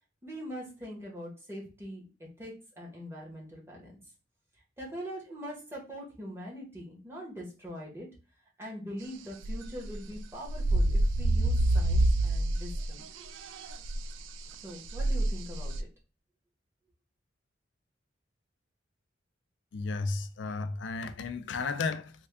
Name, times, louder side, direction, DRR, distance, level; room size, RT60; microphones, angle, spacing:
voice 1, 0.2-2.0 2.4-3.9 4.8-8.1 8.6-13.0 14.6-15.9, equal, 15° right, 1.1 m, -42 dB
sound 1, 9.4-10.2 10.4-12.9 13.2-14.1 14.9-15.8, right 1 dB, 80° right, 0.3 m, -27 dB
voice 2, 19.7-22.1, left 4 dB, 70° left, 0.4 m, -33 dB
3.5 x 2.3 x 3.4 m
head